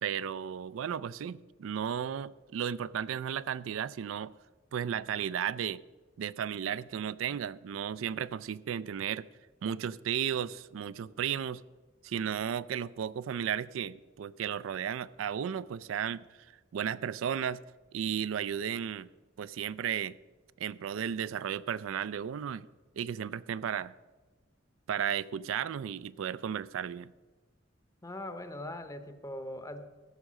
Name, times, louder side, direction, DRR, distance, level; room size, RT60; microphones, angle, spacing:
voice 1, 0.0-4.3 4.7-5.8 6.2-9.3 9.6-11.6 12.0-16.3 16.7-17.6 17.9-19.1 19.4-20.2 20.6-22.7 23.0-24.0 24.9-27.1, right 8 dB, 80° right, 0.3 m, -34 dB
voice 2, 28.0-29.8, left 1 dB, 15° left, 0.8 m, -41 dB
14.5 x 6.5 x 6.2 m
head